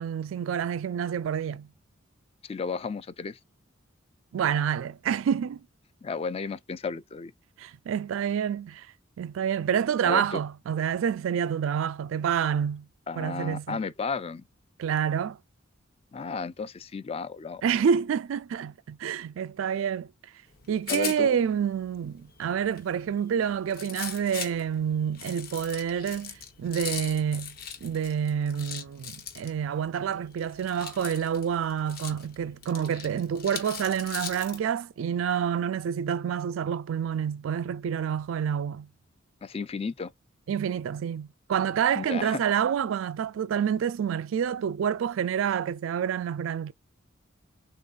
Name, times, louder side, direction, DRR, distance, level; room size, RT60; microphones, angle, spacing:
voice 1, 0.0-1.7 4.3-5.6 7.6-8.9 9.2-12.9 13.2-13.8 14.8-15.4 17.6-20.1 20.7-38.9 40.5-46.7, right 8 dB, 85° right, 0.3 m, -28 dB
voice 2, 2.4-3.4 6.0-7.3 10.0-10.4 13.1-14.4 16.1-17.6 20.9-21.4 39.4-40.1 42.0-42.4, left 5 dB, 30° left, 0.3 m, -33 dB
Rattle, 20.5-34.6, left 8 dB, 50° left, 0.8 m, -41 dB
3.8 x 3.4 x 2.4 m
head